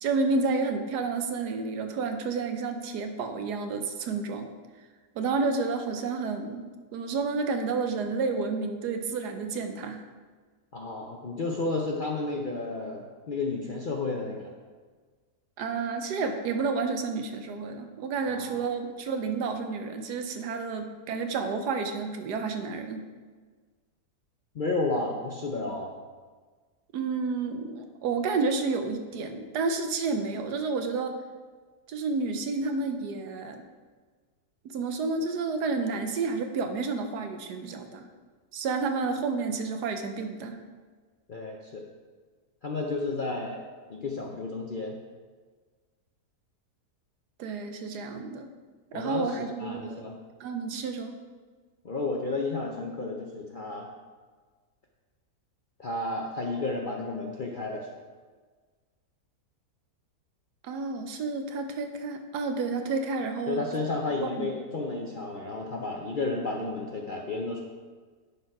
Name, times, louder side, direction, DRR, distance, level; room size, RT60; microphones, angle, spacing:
voice 1, 0.0-4.5 5.1-6.6 6.9-10.0 15.6-23.1 26.9-31.1 31.9-33.6 34.6-38.1 38.5-40.6 47.4-48.5 48.9-50.1 50.4-51.2 60.6-63.7 64.2-64.5, right 4 dB, 85° right, 6 dB, 1.3 m, -30 dB
voice 2, 10.7-14.5 18.3-18.6 24.5-25.9 41.3-41.8 42.6-43.6 43.9-45.0 48.9-50.2 51.8-53.9 55.8-57.9 63.5-67.6, left 3 dB, 55° left, 0 dB, 0.6 m, -32 dB
10.0 x 4.5 x 4.8 m, 1.4 s
omnidirectional pair, 1.7 m